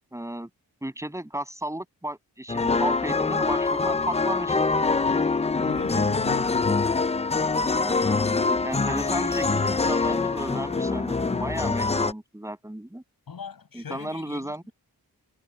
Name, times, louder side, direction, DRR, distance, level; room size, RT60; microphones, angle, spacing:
voice 1, 0.1-0.5 0.8-4.6 7.7-13.0 13.7-14.6, right 1 dB, 10° right, 7.0 m, -34 dB
sound 1, 2.5-12.1, left 4 dB, 20° left, 0.4 m, -24 dB
voice 2, 5.6-6.9 13.3-14.7, left 6 dB, 65° left, 6.5 m, -38 dB
wide cardioid pair, 155°, 38 cm